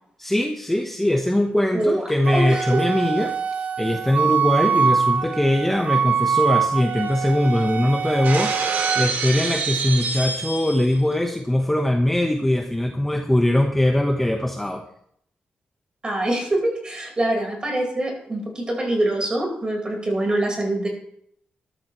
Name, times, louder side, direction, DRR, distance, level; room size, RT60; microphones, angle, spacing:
voice 1, 0.2-3.3 3.8-8.6 9.0-14.8, left 1 dB, 5° left, 3 dB, 1.0 m, -21 dB
voice 2, 1.7-2.0 2.3-2.8 16.0-20.9, right 1 dB, 25° right, 1 dB, 4.6 m, -24 dB
Wind instrument woodwind instrument, 2.3-9.1, right 6 dB, 55° right, 0.9 m, -24 dB
Shatter, 8.2-11.0, right 4 dB, 80° right, 2.6 m, -27 dB
13.5 x 13.0 x 3.1 m, 0.68 s
cardioid pair, 115°, 3 cm